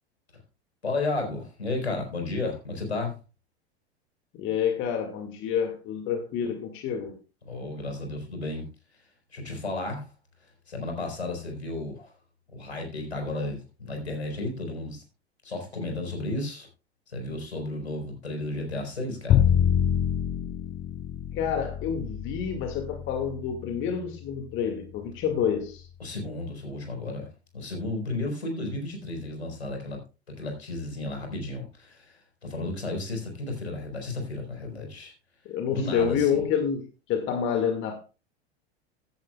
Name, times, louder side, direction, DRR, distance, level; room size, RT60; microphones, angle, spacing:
voice 1, 0.8-3.2 7.4-8.7 9.3-10.1 10.7-12.1 12.5-15.0 15.4-16.7 17.1-19.4 26.0-27.3 27.5-30.0 30.3-35.1 35.7-36.5, left 2 dB, 80° left, 3 dB, 4.6 m, -33 dB
voice 2, 4.4-7.2 21.4-25.9 35.5-36.8 37.1-38.0, left 7 dB, 40° left, 5 dB, 2.1 m, -28 dB
Bowed string instrument, 19.3-25.4, left 9 dB, 20° left, 0.4 m, -27 dB
16.0 x 10.5 x 2.3 m, 0.31 s
figure-of-eight pair, 85°, 32 cm